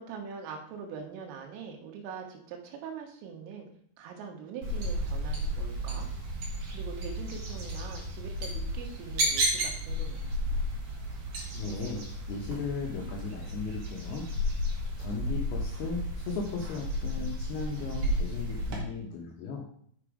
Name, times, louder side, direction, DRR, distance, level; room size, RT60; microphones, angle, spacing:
voice 1, 0.0-3.7 4.0-6.1 6.7-10.3, right 6 dB, 90° right, 3 dB, 3.9 m, -43 dB
sound 1, 4.6-18.8, equal, 50° right, 2.9 m, -33 dB
voice 2, 11.5-14.3 14.6-14.7 15.0-19.7, left 4 dB, 75° left, 0 dB, 2.4 m, -36 dB
6.8 x 6.8 x 4.8 m, 0.62 s
omnidirectional pair, 5.7 m